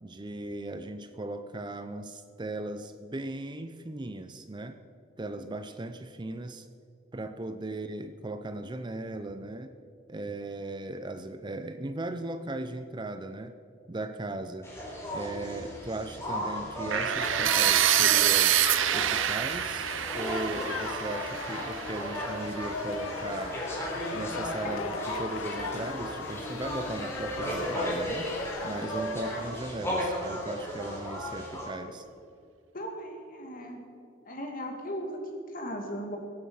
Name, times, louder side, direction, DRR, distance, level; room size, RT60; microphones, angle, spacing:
voice 1, 0.0-4.8 5.2-6.7 7.1-9.7 10.1-13.6 13.9-14.7 15.1-18.6 18.9-19.9 20.1-23.6 24.1-28.3 28.6-32.0, right 2 dB, 25° right, 10 dB, 0.5 m, -37 dB
sound 1, 14.6-31.7, equal, 15° left, 3.7 m, -35 dB
sound 2, 16.9-22.8, right 11 dB, 70° right, 0.6 m, -26 dB
sound 3, 17.2-29.5, left 8 dB, 80° left, 0.5 m, -41 dB
voice 2, 32.7-33.8 34.2-36.2, equal, 45° left, 2 dB, 2.4 m, -37 dB
22.0 x 9.2 x 5.7 m, 2.5 s
head